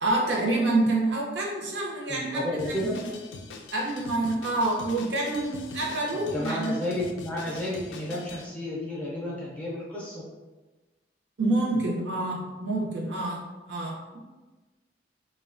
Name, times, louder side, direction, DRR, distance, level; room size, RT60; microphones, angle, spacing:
voice 1, 0.0-3.0 3.7-6.7 11.4-13.4 13.7-14.2, right 2 dB, 75° right, -3 dB, 0.6 m, -27 dB
voice 2, 2.1-3.0 6.3-10.3, left 1 dB, 10° left, -6 dB, 0.5 m, -32 dB
Drum kit, 2.6-8.5, left 4 dB, 85° left, 0.3 m, -43 dB
2.8 x 2.2 x 2.4 m, 1.2 s
head